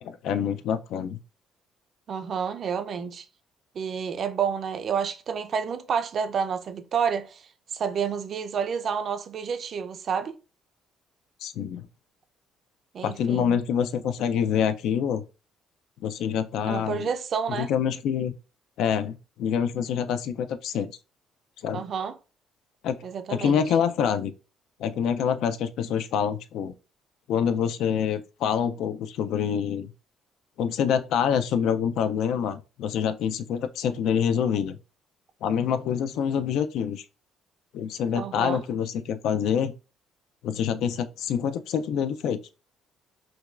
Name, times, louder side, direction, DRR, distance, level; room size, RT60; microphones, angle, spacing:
voice 1, 0.0-1.2 11.4-11.9 13.0-15.2 16.0-17.1 17.5-18.3 18.8-20.9 21.6-21.8 22.8-23.0 23.3-24.3 24.8-26.7 27.3-29.9 30.6-34.8 35.4-37.0 37.7-39.7 40.4-42.4, left 8 dB, 70° left, 0.4 m, -26 dB
voice 2, 2.1-3.2 3.7-7.4 7.7-10.4 12.9-13.6 16.7-17.7 21.7-22.1 23.0-23.6 38.1-38.6, right 6 dB, 45° right, 0.4 m, -29 dB
5.9 x 2.2 x 2.4 m
cardioid pair, 145°, 0 cm